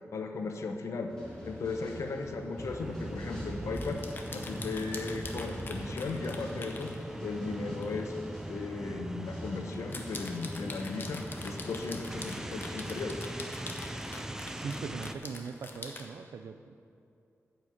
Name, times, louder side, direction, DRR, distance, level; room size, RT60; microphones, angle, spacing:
voice 1, 0.1-1.1 1.4-4.0 4.3-6.9 7.2-8.2 8.5-13.1, left 4 dB, 70° left, 5 dB, 0.8 m, -36 dB
sound 1, 1.1-14.9, equal, 15° left, 2.2 m, -46 dB
sound 2, 2.6-15.1, right 1 dB, 10° right, 0.3 m, -41 dB
sound 3, 3.7-7.0 7.8-8.0 8.4-8.5 9.7-16.0, left 3 dB, 40° left, 0.8 m, -44 dB
voice 2, 14.5-16.7, right 5 dB, 80° right, 11 dB, 0.4 m, -40 dB
9.0 x 5.3 x 7.8 m, 2.6 s
wide cardioid pair, 170°, 5 cm